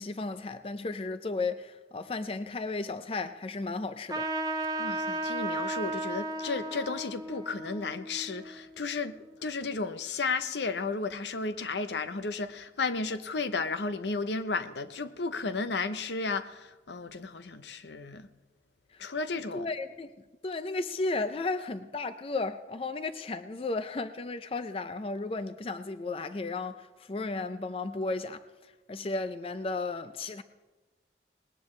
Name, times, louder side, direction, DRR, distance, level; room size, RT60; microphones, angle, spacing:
voice 1, 0.0-4.3 18.9-19.0 19.5-20.1 20.4-28.4 28.9-30.4, left 3 dB, 30° left, 0.4 m, -34 dB
Trumpet, 4.1-9.1, right 2 dB, 20° right, 0.9 m, -35 dB
voice 2, 4.7-18.3 19.0-19.7, left 4 dB, 75° left, 0.7 m, -33 dB
19.5 x 19.0 x 3.2 m
head